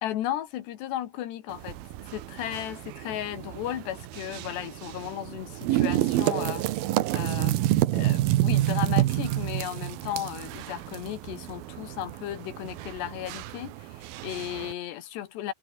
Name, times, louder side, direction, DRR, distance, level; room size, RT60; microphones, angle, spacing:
voice 1, 0.0-1.8 2.1-7.7 7.9-15.5, left 12 dB, 85° left, 3.8 m, -35 dB
sound 1, 1.5-14.7, right 15 dB, 70° right, 2.6 m, -29 dB
omnidirectional pair, 4.8 m